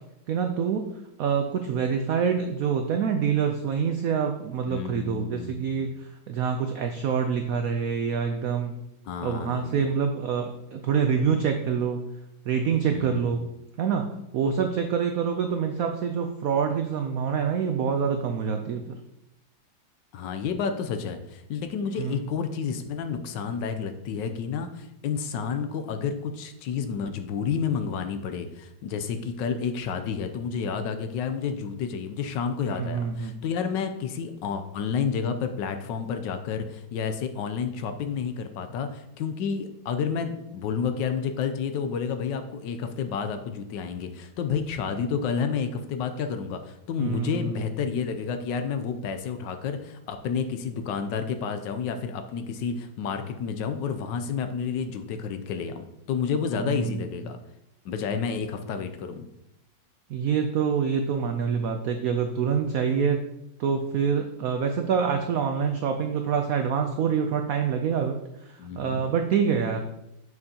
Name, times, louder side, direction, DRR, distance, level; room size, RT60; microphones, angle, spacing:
voice 1, 0.3-0.8 1.2-8.8 9.2-12.0 12.5-13.5 13.8-14.1 14.3-18.8 22.0-22.2 32.7-33.4 47.0-47.7 56.6-57.2 60.1-63.2 63.6-69.8, right 6 dB, 80° right, 5 dB, 0.8 m, -26 dB
voice 2, 4.7-5.9 9.1-9.8 12.9-13.4 20.1-57.4 57.8-59.3 68.6-69.0, left 6 dB, 75° left, 8 dB, 1.2 m, -30 dB
6.7 x 6.4 x 2.8 m, 0.84 s
omnidirectional pair, 2.1 m